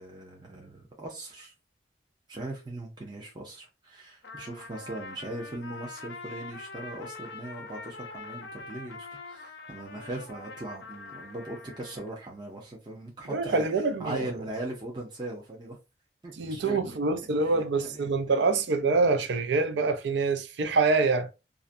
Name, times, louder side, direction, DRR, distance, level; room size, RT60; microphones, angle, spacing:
voice 1, 0.0-1.5 2.3-15.8 16.2-17.0 17.4-18.4, right 1 dB, 25° right, 0.5 m, -40 dB
Trumpet, 4.2-12.1, left 3 dB, 80° left, 0.6 m, -44 dB
voice 2, 13.3-14.3 16.4-21.3, right 3 dB, 80° right, 0.4 m, -25 dB
2.5 x 2.1 x 2.5 m
head